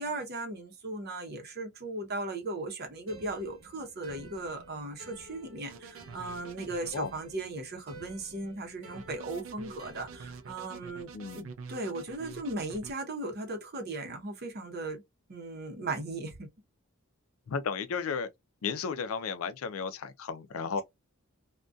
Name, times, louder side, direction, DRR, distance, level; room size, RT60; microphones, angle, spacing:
voice 1, 0.0-15.0 15.3-16.5, right 2 dB, 50° right, 0.8 m, -37 dB
sound 1, 3.1-10.8, right 2 dB, 85° right, 1.0 m, -52 dB
sound 2, 5.7-6.9 8.9-12.9, right 5 dB, 65° right, 0.4 m, -46 dB
voice 2, 11.1-11.5 17.5-18.3 18.6-20.8, left 5 dB, 75° left, 0.4 m, -34 dB
2.6 x 2.2 x 2.2 m
head